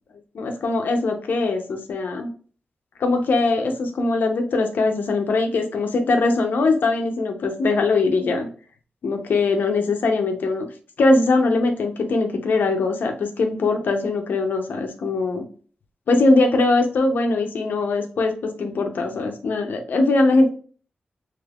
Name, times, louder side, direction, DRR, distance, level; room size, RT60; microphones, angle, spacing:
voice 1, 0.3-2.3 3.0-8.5 9.0-10.7 11.0-15.4 16.1-20.5, left 3 dB, 80° left, 5 dB, 0.7 m, -21 dB
3.5 x 3.1 x 2.3 m, 0.42 s
wide cardioid pair, 180°, 3 cm